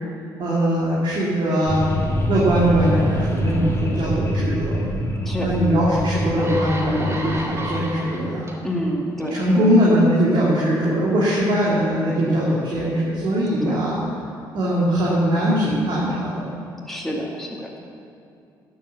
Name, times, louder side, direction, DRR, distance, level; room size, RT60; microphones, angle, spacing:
voice 1, 0.4-1.8 2.3-4.8 5.4-8.5 9.3-13.9 14.5-16.4, equal, 55° right, -6 dB, 2.8 m, -21 dB
sound 1, 1.7-7.9, equal, 25° left, 2.8 m, -25 dB
sound 2, 5.6-5.7 6.2-8.5 9.2-9.4, right 1 dB, 30° right, 2.1 m, -32 dB
voice 2, 8.6-9.7 13.6-13.8 16.9-17.8, equal, 5° left, -3 dB, 2.3 m, -28 dB
12.0 x 7.7 x 7.1 m, 2.4 s
hypercardioid pair, 50°, 10 cm